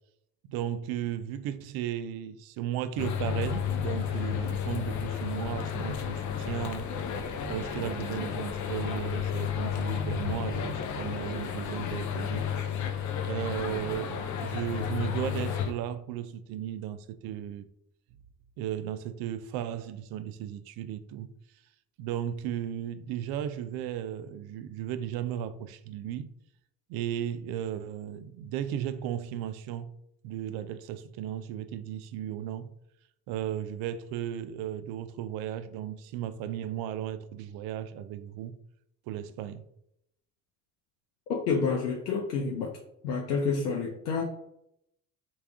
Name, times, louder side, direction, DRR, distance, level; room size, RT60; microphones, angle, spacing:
voice 1, 0.4-6.9 7.5-12.5 13.2-17.7 18.6-21.3 22.0-26.3 26.9-29.9 30.2-32.7 33.3-38.6 39.1-39.6, right 10 dB, 55° right, 0.5 m, -35 dB
sound 1, 3.0-15.7, left 8 dB, 40° left, 0.5 m, -32 dB
voice 2, 41.3-42.7 43.0-44.2, left 5 dB, 80° left, 0.6 m, -29 dB
3.4 x 2.5 x 3.5 m
hypercardioid pair, 55°, 45 cm